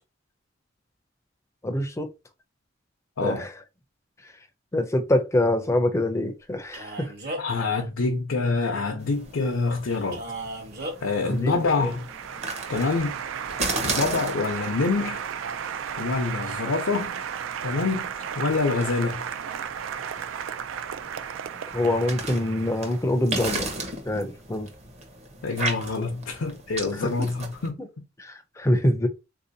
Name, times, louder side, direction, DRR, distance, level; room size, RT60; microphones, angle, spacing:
voice 1, 1.6-2.1 3.2-3.5 4.7-7.1 11.2-11.9 21.7-23.7 24.1-24.7 26.8-27.3 27.8-27.9 28.2-29.1, left 1 dB, 15° left, 0.4 m, -25 dB
Male speech man speaking, 6.7-7.6 10.1-11.0, right 1 dB, 55° right, 1.1 m, -35 dB
voice 2, 7.4-10.2 11.0-12.1 12.7-13.1 13.8-15.2 16.0-17.2 17.6-19.2 25.4-27.8, left 3 dB, 80° left, 0.6 m, -26 dB
sound 1, 9.0-27.7, right 3 dB, 35° right, 0.8 m, -37 dB
Applause, 10.7-23.2, right 8 dB, 75° right, 0.3 m, -34 dB
3.6 x 2.7 x 2.6 m
head